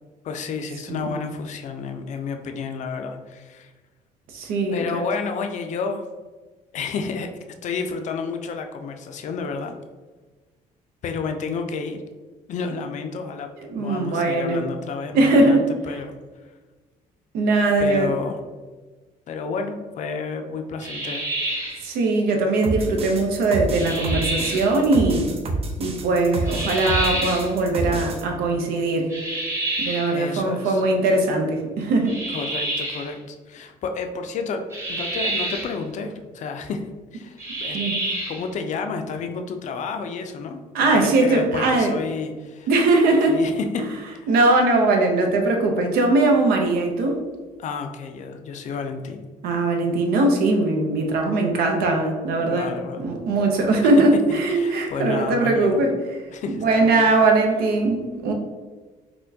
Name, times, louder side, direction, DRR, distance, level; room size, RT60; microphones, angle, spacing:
voice 1, 0.2-3.7 4.7-6.0 6.7-7.3 7.6-9.8 11.0-12.0 12.5-13.5 13.8-16.1 17.8-18.4 19.3-21.3 21.5-21.7 30.1-30.8 32.3-37.8 38.3-40.6 40.9-42.7 43.3-44.3 47.6-49.2 52.4-53.0 54.5-55.7 56.3-57.1, left 5 dB, 55° left, 6 dB, 0.4 m, -31 dB
voice 2, 4.3-5.0 13.6-14.6 15.1-15.6 17.3-18.1 21.8-25.3 25.8-29.1 29.8-32.2 37.7-38.0 40.7-41.9 42.7-43.4 44.3-47.2 49.4-56.2 56.5-58.3, right 2 dB, 85° right, 3 dB, 0.6 m, -20 dB
sound 1, 20.8-21.8 23.7-24.7 26.5-27.5 29.1-30.2 32.1-33.1 34.7-35.7 37.4-38.4, right 1 dB, 20° right, 1.0 m, -28 dB
sound 2, 22.6-28.2, right 2 dB, 40° right, 0.5 m, -28 dB
4.2 x 2.2 x 2.7 m, 1.3 s
cardioid pair, 95°, 15 cm